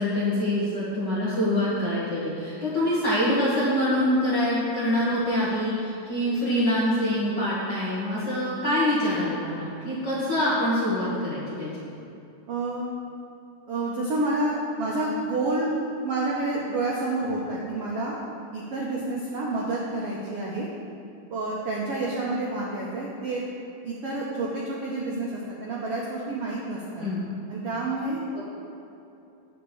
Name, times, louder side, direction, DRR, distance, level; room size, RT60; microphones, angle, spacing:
voice 1, 0.0-11.7 27.0-27.3 28.3-28.4, left 1 dB, 45° left, -8 dB, 1.4 m, -25 dB
voice 2, 12.5-12.9 13.7-15.7 16.0-18.2 18.5-20.7 21.3-23.4 23.8-25.3 25.6-27.1 27.5-28.2, right 2 dB, 70° right, -5 dB, 1.4 m, -29 dB
9.7 x 5.9 x 6.9 m, 2.7 s
omnidirectional pair, 4.1 m